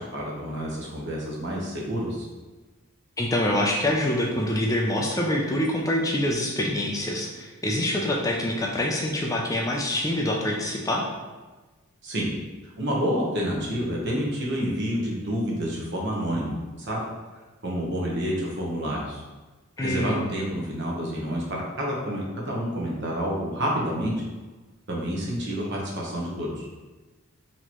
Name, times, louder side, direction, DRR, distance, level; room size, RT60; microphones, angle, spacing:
voice 1, 0.1-2.2 12.0-12.3 12.7-17.0 17.6-19.2 19.8-24.1 24.9-26.7, equal, 55° right, -3 dB, 0.9 m, -28 dB
voice 2, 3.2-11.0 19.8-20.2, left 1 dB, 15° left, -1 dB, 0.4 m, -25 dB
4.1 x 3.0 x 3.0 m, 1.3 s
head